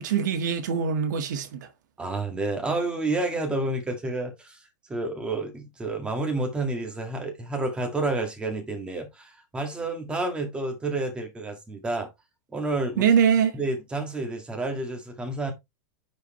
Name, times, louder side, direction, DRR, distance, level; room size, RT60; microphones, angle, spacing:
voice 1, 0.0-1.7 13.0-13.5, right 7 dB, 85° right, 1.7 m, -23 dB
voice 2, 2.0-4.6 4.9-12.1 12.5-13.1 13.5-15.5, right 2 dB, 10° right, 1.8 m, -29 dB
9.5 x 4.7 x 3.1 m
supercardioid pair, 160°, 10 cm